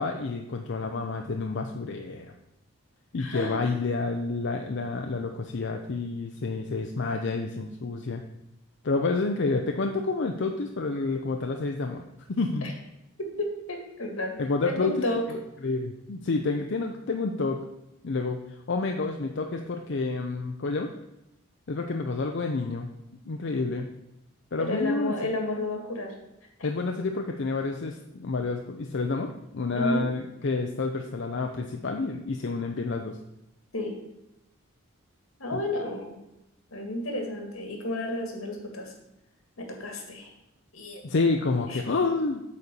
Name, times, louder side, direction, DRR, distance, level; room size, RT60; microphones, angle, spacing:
voice 1, 0.0-2.3 3.1-8.2 8.8-12.0 12.3-12.7 14.4-17.6 18.0-18.4 18.7-20.9 21.7-22.9 23.3-23.9 24.5-25.4 26.6-33.2 35.5-35.6 41.0-42.4, left 3 dB, 60° left, 4 dB, 0.6 m, -29 dB
voice 2, 3.2-3.6 13.4-14.3 14.6-15.2 24.6-26.1 26.6-26.7 29.7-30.0 33.7-33.9 35.4-36.1 36.7-38.9 39.6-40.3 40.7-41.0 41.7-41.8, left 1 dB, 80° left, 3 dB, 2.0 m, -31 dB
8.3 x 4.3 x 6.7 m, 0.87 s
head